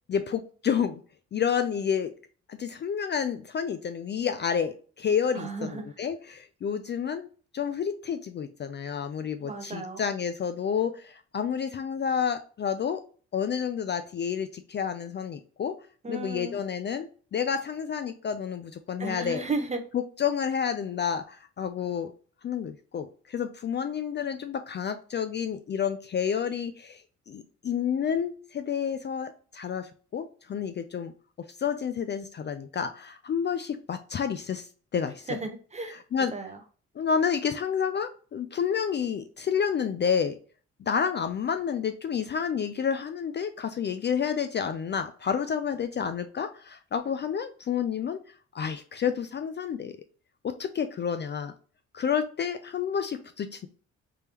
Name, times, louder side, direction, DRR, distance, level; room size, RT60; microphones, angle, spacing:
voice 1, 0.1-1.0 1.3-2.1 2.5-7.3 7.5-13.0 13.3-15.7 16.1-19.4 19.9-22.1 22.4-27.0 27.3-31.1 31.4-35.3 36.1-36.3 37.0-40.4 40.8-48.2 48.5-50.0 50.4-51.5 51.9-53.7, left 7 dB, 35° left, 9 dB, 0.4 m, -30 dB
voice 2, 5.3-5.9 9.4-10.0 16.0-16.6 19.0-19.8 35.3-36.0 36.3-36.6, right 3 dB, 20° right, 5 dB, 0.8 m, -34 dB
3.5 x 3.4 x 2.8 m, 0.41 s
cardioid pair, 90°, 30 cm